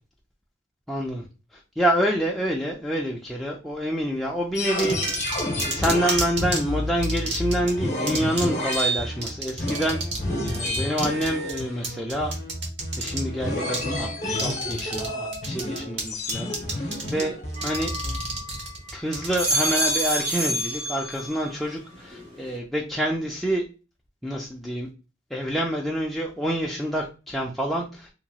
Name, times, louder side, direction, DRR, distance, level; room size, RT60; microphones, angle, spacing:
voice 1, 0.9-1.2 1.8-5.0 5.7-10.0 10.5-12.3 13.0-17.4 17.6-17.9 18.9-23.6 24.2-24.9 25.3-28.1, equal, ahead, -2 dB, 0.3 m, -27 dB
sound 1, 4.5-18.2, left 1 dB, 40° left, 0.7 m, -30 dB
sound 2, 4.8-6.6 7.0-7.7 8.1-8.5 8.7-8.8 9.2-10.2 10.5-13.2 13.7-13.9 14.3-15.1 15.3-16.0 16.3-17.2 17.5-19.9, right 3 dB, 70° right, 1.0 m, -30 dB
sound 3, 17.6-18.7 19.1-21.6 21.9-22.5, right 1 dB, 45° right, 1.6 m, -28 dB
2.9 x 2.9 x 2.3 m, 0.31 s
head